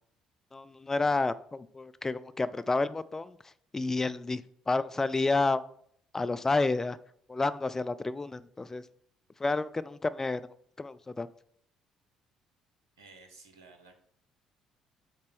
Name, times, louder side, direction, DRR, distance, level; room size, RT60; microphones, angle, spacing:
voice 1, 0.5-3.3 3.7-4.4 4.7-5.6 6.1-7.0 7.3-8.8 9.4-10.4 10.8-11.3, left 3 dB, 20° left, 14 dB, 0.5 m, -30 dB
voice 2, 13.0-14.0, right 3 dB, 85° right, 6 dB, 1.1 m, -54 dB
7.6 x 4.3 x 6.1 m, 0.64 s
hypercardioid pair, 50°, 2 cm